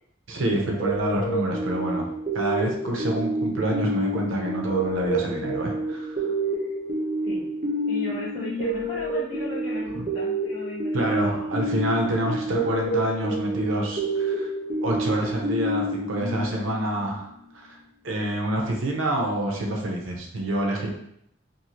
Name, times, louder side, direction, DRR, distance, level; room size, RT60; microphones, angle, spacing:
voice 1, 0.3-2.1 2.3-6.2 10.9-14.5 14.8-17.3 17.5-17.8 18.0-20.9, right 1 dB, 85° right, 0 dB, 0.6 m, -27 dB
sound 1, 0.8-17.1, right 1 dB, 40° right, 0.6 m, -28 dB
voice 2, 7.9-11.5, left 1 dB, 45° left, -14 dB, 1.0 m, -37 dB
2.6 x 2.4 x 2.9 m, 0.73 s
head